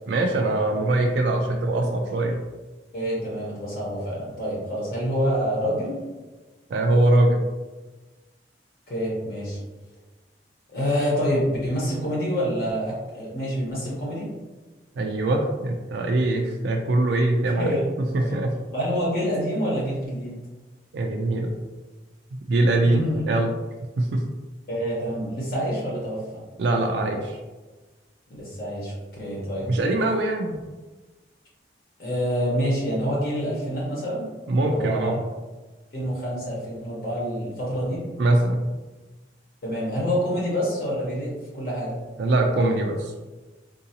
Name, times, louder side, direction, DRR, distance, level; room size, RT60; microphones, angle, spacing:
voice 1, 0.1-2.4 6.7-7.4 15.0-17.7 18.1-18.6 20.9-21.5 22.3-23.5 24.0-24.3 26.6-27.4 29.7-30.6 34.5-35.2 38.2-38.6 42.2-43.1, right 2 dB, 80° right, 2 dB, 0.4 m, -22 dB
voice 2, 2.9-5.9 8.9-9.6 10.7-14.2 17.6-17.8 18.2-18.4 18.7-20.3 22.9-23.2 24.7-26.2 28.4-28.9 29.2-29.7 32.0-34.3 34.7-35.1 35.9-38.0 39.6-42.0, equal, 55° left, -5 dB, 1.0 m, -27 dB
3.7 x 2.6 x 2.8 m, 1.2 s
head